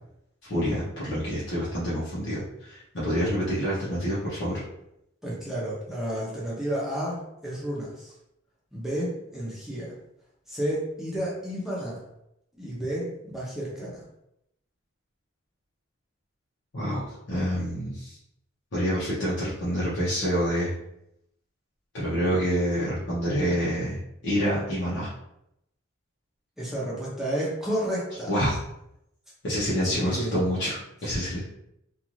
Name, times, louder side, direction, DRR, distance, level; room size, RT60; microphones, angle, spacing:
voice 1, 0.4-4.6 16.7-18.2 18.7-20.7 21.9-25.1 28.3-28.6 29.4-31.4, equal, 55° left, -9 dB, 0.8 m, -27 dB
voice 2, 5.2-8.1 8.7-9.9 10.5-12.0 12.6-14.0 26.6-28.3 29.8-30.3, right 1 dB, ahead, -6 dB, 0.7 m, -31 dB
2.5 x 2.5 x 3.0 m, 0.81 s
head